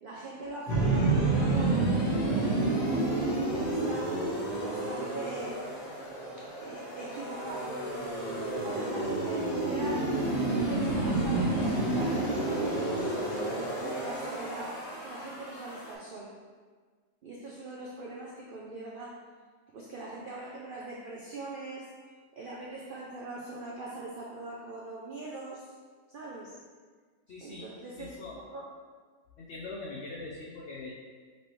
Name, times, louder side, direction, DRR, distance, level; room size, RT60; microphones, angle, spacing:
voice 1, 0.0-1.9 2.3-4.3 4.6-5.7 6.6-7.8 8.6-13.2 13.8-16.4 17.2-19.2 19.7-21.9 22.3-25.8 26.1-26.6 27.4-28.7, right 2 dB, 80° right, -3 dB, 0.4 m, -42 dB
sound 1, 0.7-15.9, right 2 dB, 85° left, 1.9 m, -30 dB
voice 2, 27.3-27.6 28.0-28.4 29.4-30.9, left 3 dB, 60° left, -4 dB, 0.7 m, -42 dB
5.4 x 3.1 x 3.0 m, 1.5 s
omnidirectional pair, 1.5 m